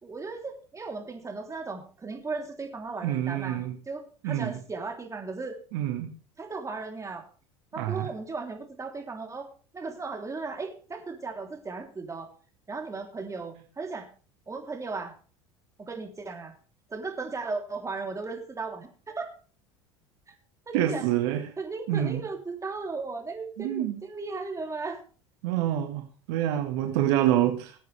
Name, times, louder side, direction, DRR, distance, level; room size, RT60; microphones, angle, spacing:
voice 1, 0.0-5.6 6.4-7.3 7.7-9.5 9.7-12.3 12.7-14.1 14.5-15.1 15.8-16.5 16.9-19.3 20.3-20.4 20.7-21.0 21.6-25.0, right 4 dB, 20° right, 3.4 m, -36 dB
voice 2, 3.0-3.8 4.2-4.6 5.7-6.1 7.8-8.1 20.7-21.5 21.9-22.2 23.6-24.0 25.4-27.8, right 12 dB, 70° right, 1.8 m, -27 dB
20.5 x 8.3 x 3.4 m
hypercardioid pair, 80°, 15 cm